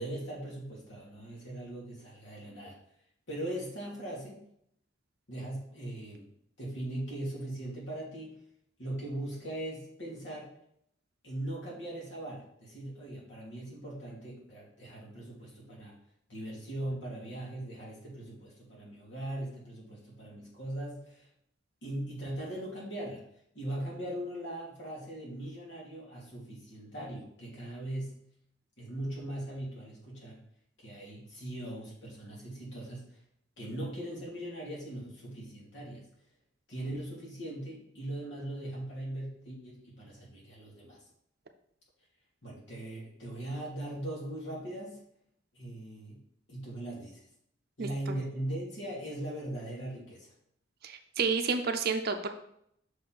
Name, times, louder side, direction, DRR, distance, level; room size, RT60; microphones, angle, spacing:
voice 1, 0.0-2.8 3.3-4.4 5.3-6.3 6.6-8.4 8.8-10.5 11.2-15.9 16.3-21.3 21.8-23.3 23.5-28.2 28.8-30.4 30.8-33.2 33.6-36.0 36.7-41.0 42.4-45.0 45.5-46.2 46.5-47.2 47.8-50.3, right 1 dB, 65° left, -4 dB, 2.5 m, -40 dB
voice 2, 50.8-52.3, right 5 dB, 50° right, 6 dB, 0.6 m, -30 dB
6.3 x 4.2 x 4.6 m, 0.72 s
head